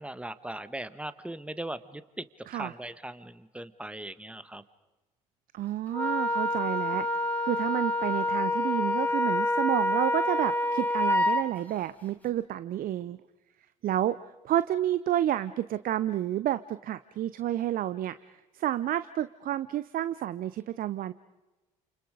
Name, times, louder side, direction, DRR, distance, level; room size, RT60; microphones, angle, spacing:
voice 1, 0.0-2.2 2.5-4.6, right 1 dB, 5° right, 13 dB, 1.4 m, -39 dB
voice 2, 5.5-7.1 7.4-13.2 13.8-14.2 14.4-21.1, right 12 dB, 55° right, 14 dB, 0.7 m, -30 dB
Wind instrument woodwind instrument, 5.9-11.4, left 1 dB, 10° left, 3.1 m, -27 dB
29.0 x 28.0 x 5.0 m, 1.1 s
hypercardioid pair, 50°, 18 cm